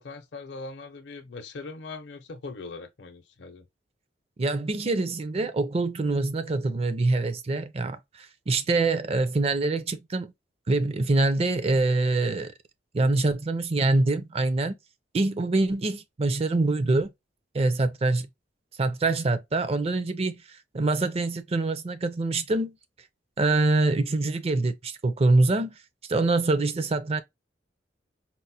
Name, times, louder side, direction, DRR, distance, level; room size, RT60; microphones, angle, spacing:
voice 1, 0.0-3.7, left 3 dB, 70° left, 0.6 m, -40 dB
voice 2, 4.4-10.3 10.7-12.5 12.9-14.7 15.1-17.1 17.5-18.3 18.8-20.4 20.7-22.8 23.4-25.8 26.1-27.2, right 2 dB, 35° right, 0.5 m, -25 dB
4.3 x 2.1 x 2.7 m
head